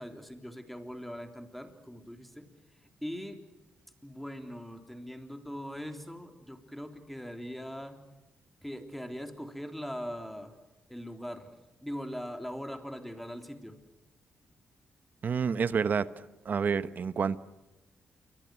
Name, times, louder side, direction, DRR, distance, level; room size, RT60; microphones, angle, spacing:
voice 1, 0.0-2.5 3.0-3.4 4.0-8.0 8.6-10.5 10.9-11.5 11.8-13.8, equal, 5° left, 6 dB, 3.5 m, -41 dB
voice 2, 15.2-16.1 16.4-17.4, right 6 dB, 55° right, 15 dB, 1.1 m, -28 dB
28.5 x 24.0 x 6.3 m, 1.1 s
cardioid pair, 90°, 4 cm